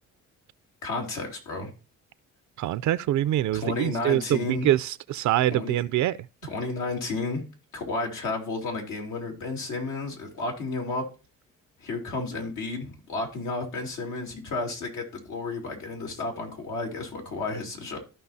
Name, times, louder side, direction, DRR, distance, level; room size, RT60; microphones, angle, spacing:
voice 1, 0.8-1.7 3.5-4.7 5.5-5.8 6.4-7.4 7.7-11.1 11.8-18.0, left 3 dB, 85° left, 2.9 m, -32 dB
voice 2, 2.6-6.2, right 13 dB, 70° right, 0.5 m, -25 dB
14.0 x 5.6 x 2.7 m
cardioid pair, 90°, 30 cm